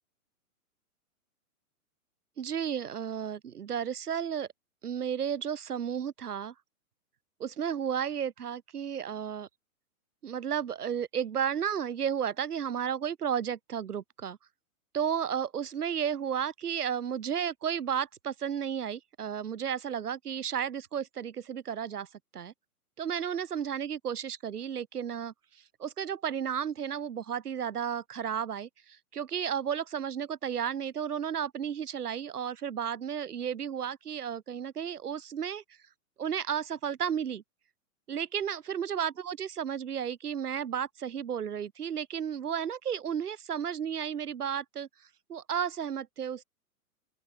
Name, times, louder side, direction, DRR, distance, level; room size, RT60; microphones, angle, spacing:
voice 1, 2.4-4.5 4.8-6.5 7.4-9.5 10.2-14.4 14.9-22.1 22.3-22.5 23.0-35.6 36.2-37.4 38.1-44.9 45.3-46.4, right 8 dB, 85° right, 2.0 m, -33 dB
open air
hypercardioid pair, 140°, 44 cm